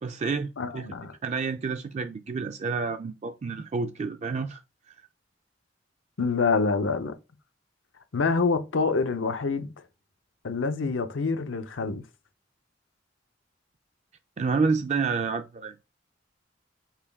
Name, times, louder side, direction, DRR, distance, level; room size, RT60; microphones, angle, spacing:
voice 1, 0.0-0.9 1.2-4.6 14.4-15.7, right 4 dB, 35° right, 0.4 m, -29 dB
voice 2, 0.6-1.1 6.2-7.2 8.1-9.7 10.4-12.0, left 4 dB, 85° left, 0.7 m, -26 dB
5.7 x 2.3 x 3.4 m
head